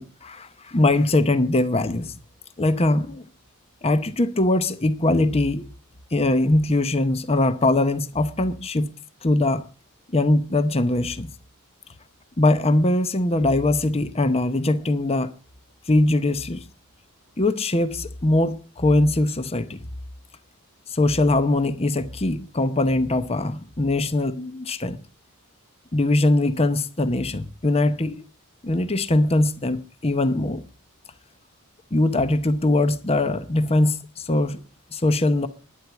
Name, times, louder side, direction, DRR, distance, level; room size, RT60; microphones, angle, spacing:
voice 1, 0.0-2.2 2.6-3.2 3.8-5.6 6.1-9.0 9.2-9.7 10.1-11.3 12.4-15.3 15.9-16.7 17.4-19.8 20.9-25.0 25.9-28.2 28.6-30.6 31.9-34.6 34.9-35.5, left 2 dB, 25° left, 0.8 m, -21 dB
11.5 x 10.5 x 7.1 m
head